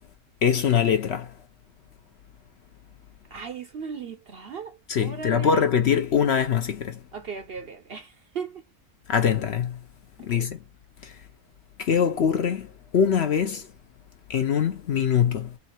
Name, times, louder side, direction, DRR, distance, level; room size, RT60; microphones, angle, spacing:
voice 1, 0.4-1.3 4.9-7.0 9.1-9.8 10.2-10.6 11.0-11.2 11.8-13.7 14.3-15.5, left 7 dB, 60° left, 0.8 m, -23 dB
voice 2, 3.3-5.7 7.1-8.6 10.2-10.5, right 6 dB, 55° right, 0.7 m, -37 dB
4.0 x 2.7 x 4.3 m
omnidirectional pair, 1.5 m